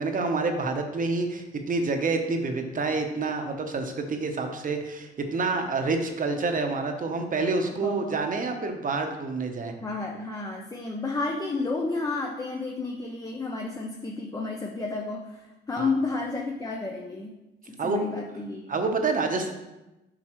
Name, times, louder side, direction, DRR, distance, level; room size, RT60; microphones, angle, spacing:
voice 1, 0.0-9.7 15.8-15.9 17.8-18.0 18.7-19.5, right 3 dB, 40° right, 5 dB, 1.0 m, -28 dB
voice 2, 7.8-8.2 9.8-17.3 17.7-18.7, left 3 dB, 20° left, 0 dB, 0.8 m, -31 dB
7.6 x 5.3 x 3.1 m, 1.0 s
cardioid pair, 90°, 20 cm